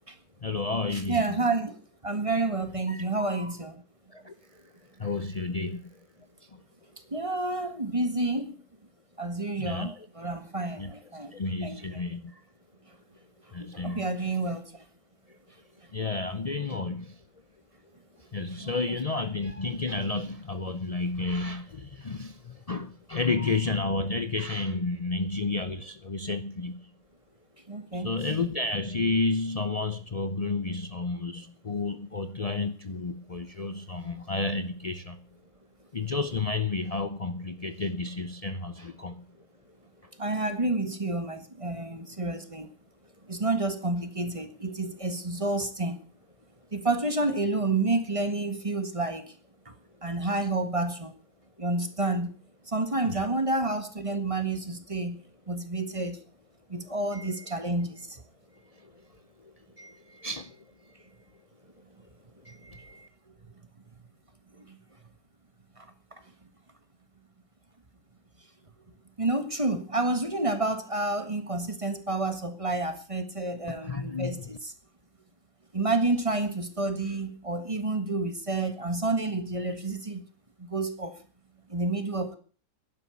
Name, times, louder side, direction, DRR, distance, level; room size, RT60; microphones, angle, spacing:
voice 1, 0.4-1.4 2.9-3.5 4.1-4.3 5.0-5.8 9.6-10.1 10.8-10.9 11.3-12.3 13.5-14.1 15.9-17.1 18.3-26.9 27.9-35.2 35.9-39.2 53.1-53.3 57.1-57.4 58.8-58.9 59.8-60.6 62.4-63.1 73.7-74.4, left 3 dB, 55° left, 10 dB, 0.4 m, -31 dB
voice 2, 0.9-1.8 2.0-3.8 7.1-8.5 9.2-11.3 11.6-12.0 13.6-14.7 18.6-18.7 27.7-28.1 40.2-42.7 43.3-46.0 46.7-49.3 49.6-49.7 50.0-51.1 51.6-52.3 52.7-55.2 55.5-56.2 56.7-58.2 64.6-64.8 65.8-65.9 69.2-74.7 75.7-80.2 80.6-81.2 81.7-82.4, right 2 dB, 20° right, 9 dB, 1.6 m, -29 dB
11.5 x 10.5 x 8.3 m, 0.41 s
omnidirectional pair, 1.9 m